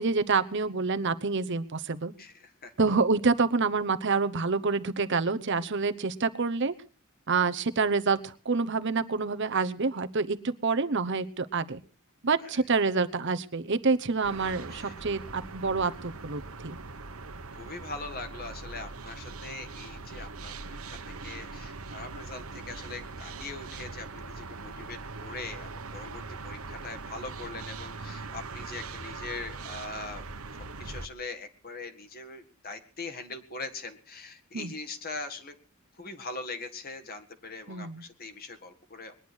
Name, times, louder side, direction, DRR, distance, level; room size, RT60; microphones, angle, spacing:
voice 1, 0.0-2.1 2.8-6.7 7.3-11.8 12.2-16.8 34.5-34.7 37.7-38.0, right 4 dB, 55° right, 10 dB, 0.9 m, -27 dB
voice 2, 2.2-2.7 12.4-12.5 14.7-14.9 17.5-30.2 30.8-35.6 36.0-39.2, left 3 dB, 45° left, 8 dB, 1.9 m, -41 dB
sound 1, 14.2-31.1, right 3 dB, 85° right, 1.2 m, -41 dB
21.0 x 10.5 x 6.3 m, 0.39 s
head